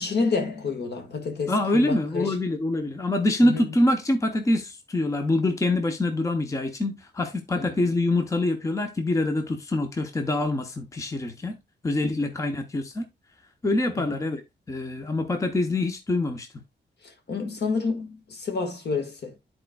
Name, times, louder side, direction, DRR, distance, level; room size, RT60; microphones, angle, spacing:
voice 1, 0.0-2.4 3.4-3.6 7.5-7.8 13.9-14.2 17.0-19.4, left 4 dB, 65° left, 1.6 m, -29 dB
voice 2, 1.5-11.6 11.8-13.1 13.6-14.4 14.7-16.5, left 2 dB, 15° left, 0.7 m, -25 dB
12.5 x 4.4 x 2.2 m
wide cardioid pair, 170°, 19 cm